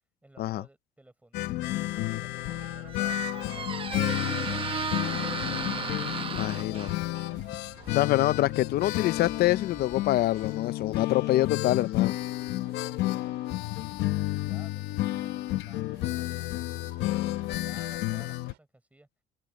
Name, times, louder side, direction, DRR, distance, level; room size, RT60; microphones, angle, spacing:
voice 1, 0.2-1.5 1.8-5.8 6.3-7.0 8.5-8.6 12.4-19.1, right 1 dB, 10° right, 5.8 m, -57 dB
sound 1, 1.3-18.5, left 17 dB, 85° left, 1.0 m, -31 dB
Squeak, 2.3-11.0, right 6 dB, 30° right, 1.0 m, -37 dB
voice 2, 6.3-6.9 7.9-12.1, left 15 dB, 65° left, 0.6 m, -26 dB
sound 2, 6.9-18.6, right 17 dB, 90° right, 5.7 m, -61 dB
open air
cardioid pair, 110°, 17 cm